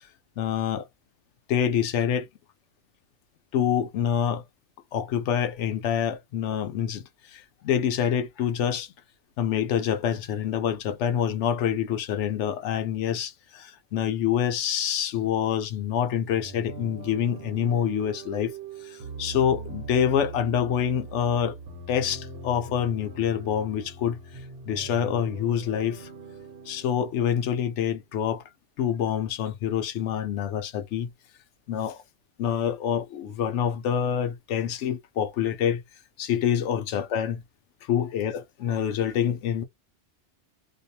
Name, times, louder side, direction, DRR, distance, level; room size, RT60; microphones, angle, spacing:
voice 1, 0.4-0.8 1.5-2.2 3.5-4.4 4.9-7.0 7.6-8.9 9.4-13.3 13.9-18.5 19.2-21.5 21.9-24.2 24.7-26.0 26.7-28.4 28.8-31.1 31.7-32.0 32.4-35.8 36.2-37.4 37.9-39.6, left 9 dB, 85° left, 0.9 m, -26 dB
sound 1, 16.3-28.0, right 4 dB, 65° right, 1.0 m, -41 dB
2.6 x 2.2 x 2.7 m
omnidirectional pair, 1.2 m